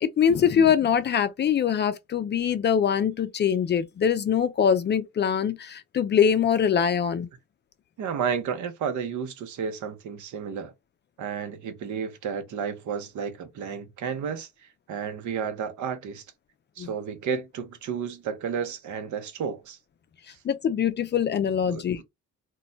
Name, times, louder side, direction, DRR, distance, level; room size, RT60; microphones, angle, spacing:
voice 1, 0.0-7.3 16.8-16.9 20.4-22.0, left 8 dB, 35° left, 0.4 m, -23 dB
voice 2, 8.0-10.7 11.2-14.5 14.9-16.2 16.8-19.8 21.6-22.0, right 6 dB, 75° right, 0.7 m, -32 dB
2.2 x 2.1 x 3.8 m
cardioid pair, 90°, 30 cm